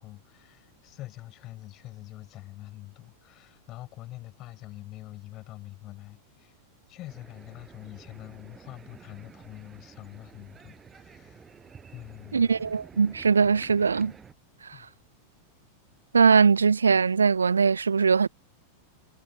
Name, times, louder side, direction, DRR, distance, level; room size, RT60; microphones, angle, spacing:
voice 1, 0.0-6.5 6.9-11.5 11.9-12.6 14.7-14.9, left 16 dB, 35° left, 6.7 m, -45 dB
sound 1, 7.1-14.3, right 6 dB, 20° right, 6.2 m, -51 dB
voice 2, 12.3-14.1 16.1-18.3, right 5 dB, 75° right, 0.9 m, -21 dB
figure-of-eight pair, 90°, 0 cm